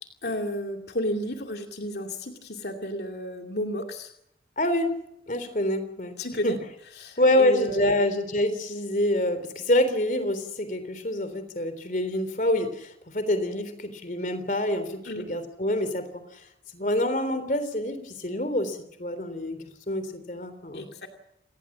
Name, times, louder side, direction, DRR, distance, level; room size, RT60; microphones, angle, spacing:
voice 1, 0.0-4.1 6.2-6.6 6.9-8.0 15.0-15.3 20.7-21.1, equal, 70° left, 4 dB, 2.5 m, -32 dB
voice 2, 4.6-4.9 5.3-6.2 6.4-6.5 7.2-16.4 16.7-20.9, left 1 dB, 45° left, 10 dB, 3.5 m, -26 dB
28.5 x 19.0 x 7.3 m, 0.78 s
head